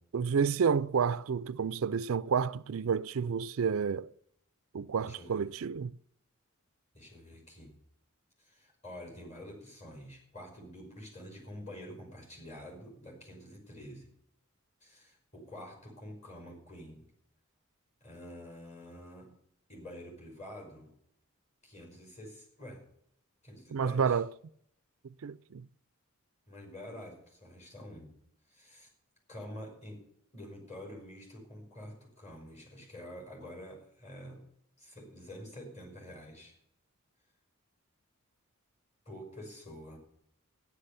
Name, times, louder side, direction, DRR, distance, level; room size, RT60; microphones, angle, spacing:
voice 1, 0.1-4.1 4.7-5.9 23.7-24.3 25.0-25.7, right 6 dB, 70° right, 0.4 m, -30 dB
voice 2, 5.0-5.4 6.9-7.8 8.4-14.1 14.8-17.1 18.0-19.3 19.7-20.9 21.6-22.9 23.4-24.2 26.5-28.2 28.5-28.9 29.3-34.5 34.8-36.6 39.1-40.0, equal, 30° left, 5.4 m, -48 dB
13.0 x 10.5 x 6.7 m
head